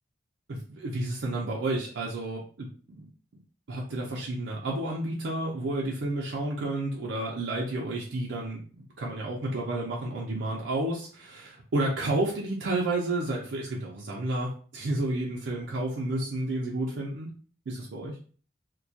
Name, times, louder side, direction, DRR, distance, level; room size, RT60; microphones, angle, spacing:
voice 1, 0.5-3.4 3.7-17.3 17.7-18.2, right 2 dB, 85° right, -3 dB, 0.5 m, -31 dB
2.2 x 2.1 x 2.7 m, 0.41 s
head